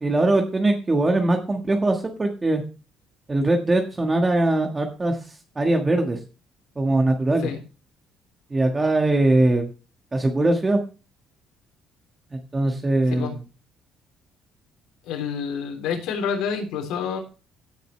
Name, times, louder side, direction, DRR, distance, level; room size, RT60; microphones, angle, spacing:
voice 1, 0.0-2.6 3.3-5.2 5.5-6.2 6.8-7.5 8.5-9.6 10.1-10.8 12.3-13.4, right 2 dB, 20° right, 3 dB, 1.5 m, -21 dB
voice 2, 15.0-17.2, left 6 dB, 85° left, 2 dB, 3.4 m, -28 dB
16.5 x 6.6 x 3.2 m, 0.33 s
cardioid pair, 130°, 0 cm